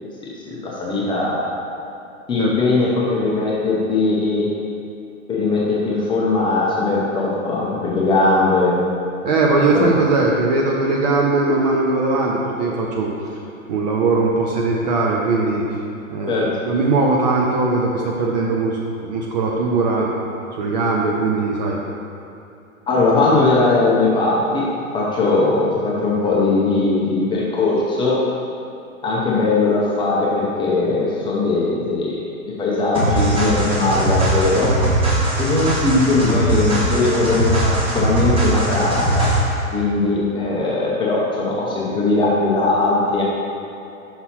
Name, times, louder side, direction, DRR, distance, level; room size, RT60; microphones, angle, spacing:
voice 1, 0.2-1.4 2.3-4.5 5.3-8.8 9.7-9.9 16.3-16.5 22.9-24.7 24.9-28.2 29.0-32.2 32.6-34.7 35.4-39.3 39.7-43.2, left 3 dB, 10° left, -5 dB, 0.8 m, -19 dB
voice 2, 9.2-13.1 13.7-15.6 16.1-20.1 20.5-21.8, right 3 dB, 30° right, -2 dB, 0.7 m, -19 dB
sound 1, 32.9-39.6, right 1 dB, 15° right, 1.2 m, -20 dB
6.0 x 5.5 x 4.2 m, 2.7 s
figure-of-eight pair, 115°, 41 cm